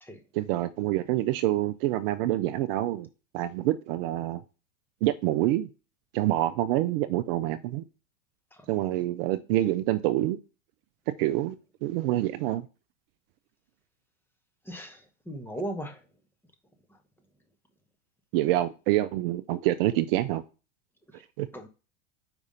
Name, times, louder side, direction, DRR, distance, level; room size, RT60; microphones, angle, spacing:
voice 1, 0.3-3.1 3.3-4.4 5.0-5.7 6.1-7.8 8.7-10.4 11.2-12.6 18.3-20.4 21.4-21.5, right 15 dB, 50° right, 0.5 m, -26 dB
voice 2, 14.7-16.0 21.5-21.7, right 1 dB, 5° left, 0.9 m, -37 dB
4.9 x 3.6 x 5.4 m
hypercardioid pair, 100°, 38 cm